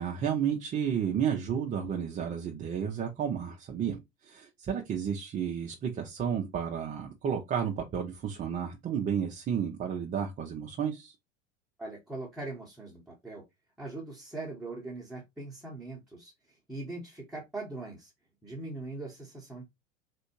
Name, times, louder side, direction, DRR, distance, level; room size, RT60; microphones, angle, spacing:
voice 1, 0.0-11.1, right 8 dB, 20° right, 0.5 m, -32 dB
voice 2, 11.8-13.4 13.8-18.1 18.4-19.6, right 2 dB, ahead, 0.9 m, -41 dB
3.4 x 2.6 x 2.9 m
figure-of-eight pair, 80°, 40 cm